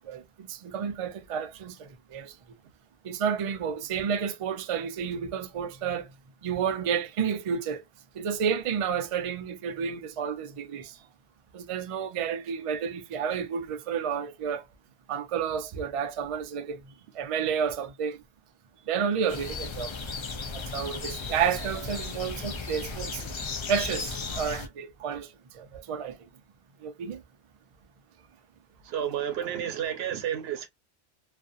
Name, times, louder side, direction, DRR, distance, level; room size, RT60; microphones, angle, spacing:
voice 1, 0.5-2.3 3.0-6.1 6.4-7.8 8.2-10.9 11.5-14.6 15.1-16.8 17.2-18.2 18.9-19.9 20.5-23.3 23.7-25.3 25.6-26.2 26.8-27.2, right 7 dB, 55° right, 0.3 m, -30 dB
sound 1, 19.3-24.7, left 4 dB, 50° left, 0.3 m, -35 dB
voice 2, 28.9-30.7, right 9 dB, 75° right, 0.8 m, -31 dB
2.6 x 2.5 x 2.4 m
omnidirectional pair, 1.1 m